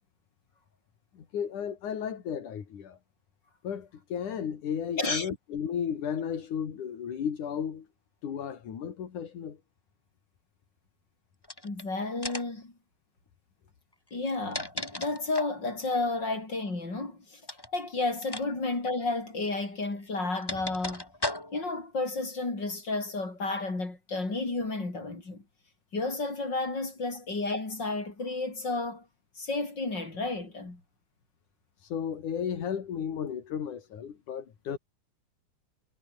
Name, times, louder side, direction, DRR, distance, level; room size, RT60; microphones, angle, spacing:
voice 1, 1.1-3.0 3.6-7.9 8.2-9.6 31.8-34.8, left 8 dB, 80° left, 4.1 m, -34 dB
voice 2, 5.0-5.3 11.6-12.7 14.1-17.4 17.7-21.1 21.5-25.4 25.9-29.0 29.4-30.8, left 3 dB, 35° left, 6.6 m, -32 dB
sound 1, 11.4-11.8 12.2-12.6 14.1-15.6 17.4-17.7 18.2-18.5 18.7-18.9 19.8-21.8, left 1 dB, 10° left, 2.2 m, -37 dB
omnidirectional pair, 3.5 m